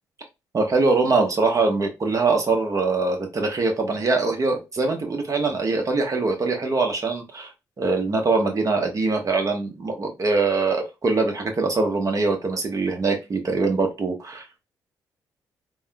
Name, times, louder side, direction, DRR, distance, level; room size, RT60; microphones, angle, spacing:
voice 1, 0.5-7.5 7.8-14.5, right 3 dB, 40° right, 3 dB, 1.0 m, -23 dB
3.5 x 2.2 x 2.3 m, 0.25 s
hypercardioid pair, 50°, 8 cm